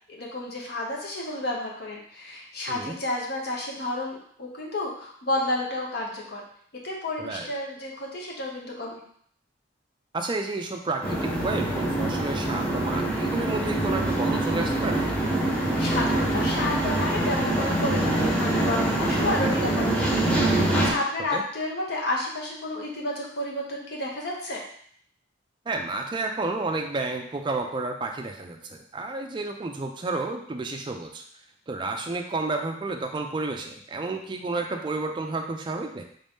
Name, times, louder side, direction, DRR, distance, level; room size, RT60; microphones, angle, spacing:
voice 1, 0.1-6.4 6.8-9.0 15.8-24.6, left 1 dB, 55° left, -1 dB, 0.8 m, -31 dB
voice 2, 10.1-15.0 19.4-19.7 21.3-21.4 25.7-31.2 31.7-36.1, right 3 dB, 25° right, 3 dB, 0.4 m, -31 dB
sound 1, 11.0-20.9, right 1 dB, 5° left, 0.7 m, -25 dB
3.6 x 2.6 x 3.5 m, 0.62 s
head